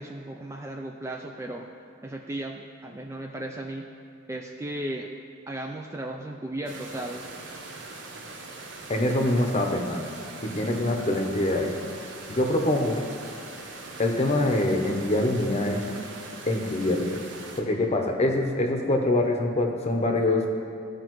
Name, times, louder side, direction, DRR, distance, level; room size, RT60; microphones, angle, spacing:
voice 1, 0.0-1.7 2.0-3.9 4.3-5.1 5.5-7.3, right 1 dB, 15° right, 2 dB, 0.3 m, -35 dB
sound 1, 6.7-17.6, right 3 dB, 65° right, 0.8 m, -41 dB
voice 2, 8.9-10.0 10.4-11.7 12.3-13.0 14.0-15.8 16.5-17.2 17.6-20.5, left 1 dB, 30° left, 2 dB, 0.8 m, -24 dB
14.0 x 5.0 x 3.1 m, 2.7 s
head